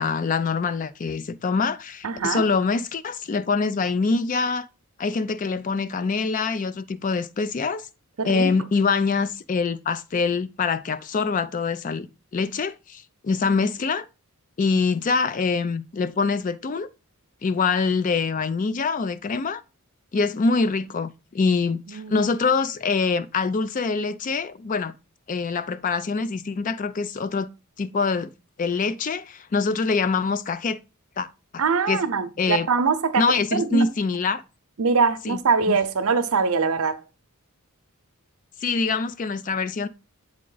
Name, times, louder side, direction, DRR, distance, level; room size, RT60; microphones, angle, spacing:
voice 1, 0.0-4.7 5.0-7.9 8.2-12.1 12.3-14.1 14.6-16.9 17.4-19.6 20.1-24.9 25.3-27.5 27.8-28.3 28.6-30.8 31.2-31.3 31.5-32.0 32.4-32.7 33.2-34.4 35.2-35.4 35.7-35.8 38.6-39.9, left 4 dB, 35° left, 0.3 m, -24 dB
voice 2, 2.0-2.4 8.2-8.5 21.9-22.2 31.6-33.3 33.5-33.9 34.8-37.0, right 5 dB, 70° right, 0.7 m, -23 dB
7.5 x 3.6 x 3.8 m
head